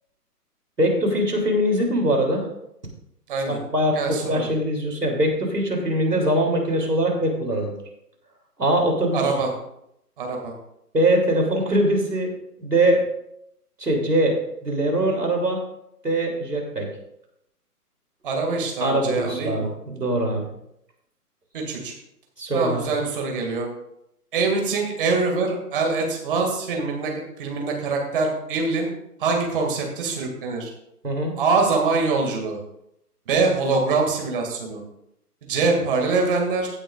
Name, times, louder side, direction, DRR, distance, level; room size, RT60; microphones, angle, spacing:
voice 1, 0.8-2.5 3.5-7.7 8.6-9.2 10.9-12.3 12.6-13.0 13.8-14.3 14.6-15.6 16.0-16.9 18.8-20.5 22.4-22.9 31.0-31.4, right 1 dB, 75° right, 1 dB, 3.4 m, -22 dB
voice 2, 3.3-3.6 3.9-4.5 9.1-9.5 10.2-10.5 18.2-19.7 21.5-21.9 22.5-23.7 24.3-27.1 27.4-28.9 29.2-30.7 31.4-32.6 33.3-34.8 35.5-36.7, right 4 dB, 35° right, 1 dB, 2.4 m, -24 dB
16.0 x 8.6 x 2.5 m, 0.79 s
figure-of-eight pair, 135°, 47 cm